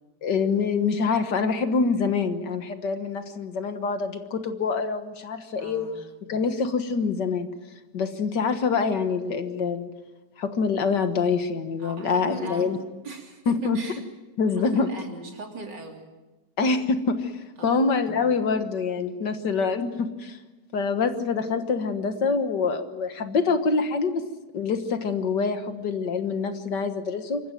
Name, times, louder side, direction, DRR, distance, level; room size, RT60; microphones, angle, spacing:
voice 1, 0.2-5.9 6.3-7.5 7.9-9.9 10.4-12.8 13.5-13.8 14.4-14.9 16.6-17.3 17.6-20.4 20.7-24.2 24.5-27.4, left 5 dB, 70° left, 8 dB, 2.0 m, -25 dB
voice 2, 5.6-6.0 11.8-12.7 13.0-14.0 14.5-16.1 17.6-17.8, right 3 dB, 70° right, 1 dB, 4.0 m, -39 dB
26.5 x 14.5 x 9.3 m, 1.2 s
omnidirectional pair, 2.0 m